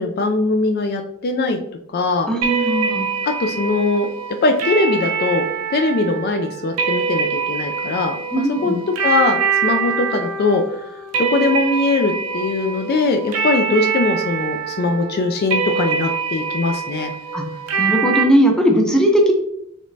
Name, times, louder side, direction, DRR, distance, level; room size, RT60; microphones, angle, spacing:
voice 1, 0.0-1.6 1.9-2.3 3.2-4.1 4.4-5.5 5.7-10.6 11.2-17.1, left 3 dB, 45° left, 5 dB, 0.3 m, -21 dB
voice 2, 2.3-3.0 8.3-8.8 17.3-17.4 17.8-19.3, equal, 5° left, 1 dB, 0.6 m, -17 dB
sound 1, 2.4-18.2, right 6 dB, 80° right, 0.7 m, -24 dB
5.0 x 3.1 x 2.6 m, 0.75 s
head